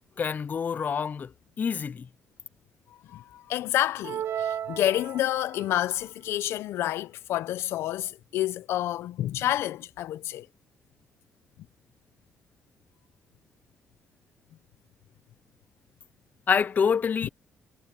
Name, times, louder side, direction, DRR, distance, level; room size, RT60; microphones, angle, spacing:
voice 1, 0.2-1.3 1.6-2.1 16.5-17.3, left 6 dB, 45° left, 0.5 m, -26 dB
voice 2, 2.9-10.5 17.2-17.3, left 13 dB, 85° left, 0.7 m, -29 dB
sound 1, 4.0-5.7, right 9 dB, 65° right, 0.5 m, -33 dB
cardioid pair, 80°, 4 cm